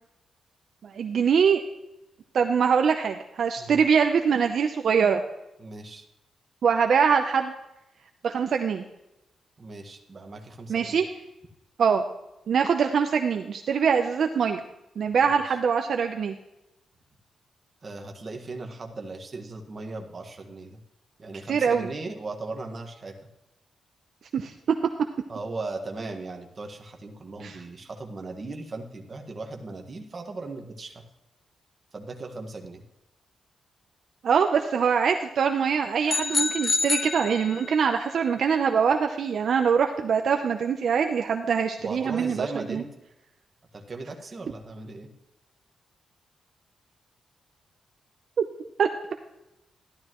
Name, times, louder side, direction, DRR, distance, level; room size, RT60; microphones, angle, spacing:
voice 1, 0.8-1.6 2.3-5.2 6.6-7.5 8.2-8.8 10.7-11.0 11.8-12.0 12.5-14.6 15.0-16.3 21.5-21.9 24.3-24.5 27.4-27.6 34.2-42.8 48.8-48.9, right 6 dB, 60° right, 5 dB, 0.7 m, -23 dB
voice 2, 5.6-6.0 9.6-11.0 15.2-15.6 17.8-20.8 21.2-23.1 25.3-31.0 31.9-32.8 41.8-42.9 43.7-45.1, right 3 dB, 30° right, 3 dB, 1.6 m, -37 dB
sound 1, 36.1-37.9, left 3 dB, 30° left, 0.6 m, -27 dB
13.0 x 12.0 x 3.1 m, 0.90 s
wide cardioid pair, 145°, 0 cm